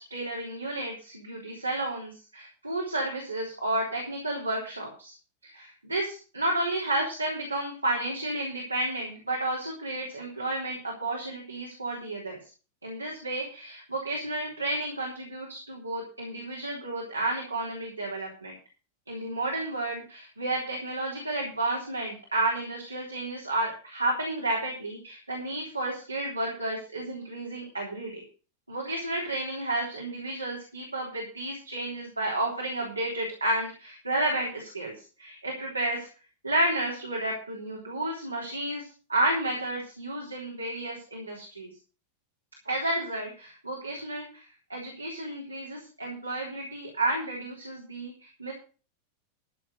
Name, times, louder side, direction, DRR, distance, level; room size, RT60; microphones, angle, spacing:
voice 1, 0.1-5.1 5.5-12.4 12.8-18.5 19.1-28.2 28.7-34.9 35.2-36.1 36.4-38.8 39.1-41.7 42.7-44.4 44.7-48.1 48.4-48.5, right 1 dB, 85° right, -2 dB, 3.5 m, -31 dB
14.0 x 6.5 x 6.6 m, 0.36 s
figure-of-eight pair, 90°, 0 cm